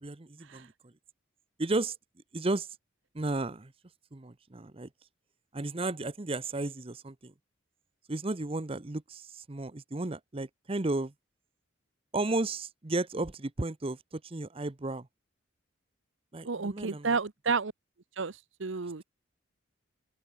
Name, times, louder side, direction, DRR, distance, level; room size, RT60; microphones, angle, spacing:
voice 1, 0.0-0.9 1.6-1.9 2.3-2.7 3.1-3.7 4.1-4.9 5.5-7.3 8.1-11.1 12.1-15.1 16.3-17.1, right 2 dB, 30° right, 0.8 m, -33 dB
voice 2, 16.4-17.7 18.2-19.0, right 4 dB, 65° right, 0.9 m, -31 dB
head